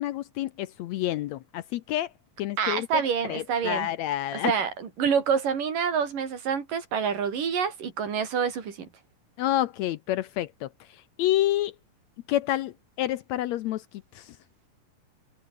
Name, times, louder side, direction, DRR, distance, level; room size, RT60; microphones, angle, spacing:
voice 1, 0.0-2.1 2.4-3.0 3.3-4.5 9.4-10.7 11.2-11.7 12.3-13.8 14.2-14.4, left 13 dB, 75° left, 1.7 m, -28 dB
voice 2, 2.6-3.9 4.4-8.9, right 6 dB, 85° right, 5.1 m, -27 dB
omnidirectional pair, 3.7 m